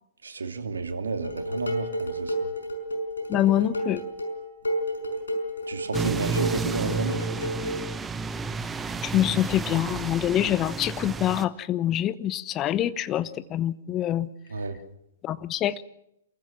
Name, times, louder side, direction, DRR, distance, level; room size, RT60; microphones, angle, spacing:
voice 1, 0.2-2.5 5.7-7.2 14.5-14.8, right 4 dB, 80° right, 6 dB, 2.8 m, -32 dB
Dishes pots and pans, 1.2-7.8, equal, 80° left, 5.7 m, -31 dB
voice 2, 3.3-4.0 9.0-14.3 15.2-15.7, left 12 dB, 25° left, 17 dB, 1.0 m, -25 dB
sound 1, 5.9-11.4, right 4 dB, 15° right, 1.1 m, -31 dB
28.0 x 15.0 x 7.5 m, 0.82 s
figure-of-eight pair, 115°, 0 cm